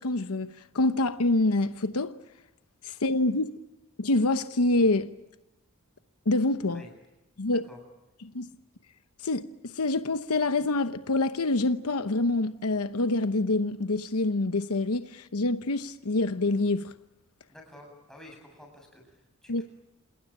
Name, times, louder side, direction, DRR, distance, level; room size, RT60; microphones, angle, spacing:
voice 1, 0.0-2.2 2.8-3.5 4.0-5.1 6.3-6.8 7.4-7.6 8.3-8.5 9.2-16.9 19.5-19.6, left 2 dB, 80° left, 0.9 m, -26 dB
voice 2, 7.5-7.8 17.5-19.6, left 1 dB, ahead, 7.9 m, -51 dB
28.5 x 19.5 x 8.8 m
head